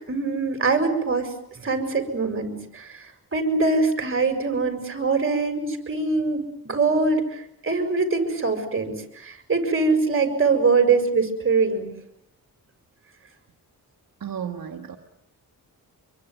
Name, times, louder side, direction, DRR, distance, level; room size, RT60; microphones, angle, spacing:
voice 1, 0.1-1.3 1.6-3.1 3.3-11.9, right 4 dB, 35° right, 7 dB, 6.7 m, -23 dB
voice 2, 14.2-15.0, right 8 dB, 75° right, 4 dB, 2.0 m, -33 dB
27.0 x 23.0 x 9.6 m, 0.80 s
wide cardioid pair, 105°, 35 cm